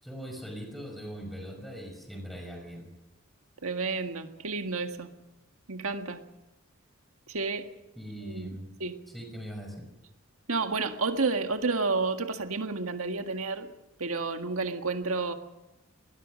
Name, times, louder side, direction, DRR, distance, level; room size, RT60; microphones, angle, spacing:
voice 1, 0.0-2.9 8.0-8.7 9.1-9.9, equal, ahead, 3 dB, 5.6 m, -41 dB
voice 2, 3.6-5.1 5.7-6.2 7.3-7.7 8.3-8.5 8.8-9.0 10.5-13.7 14.0-15.3, right 4 dB, 85° right, 6 dB, 1.8 m, -30 dB
23.5 x 20.5 x 6.4 m, 0.98 s
head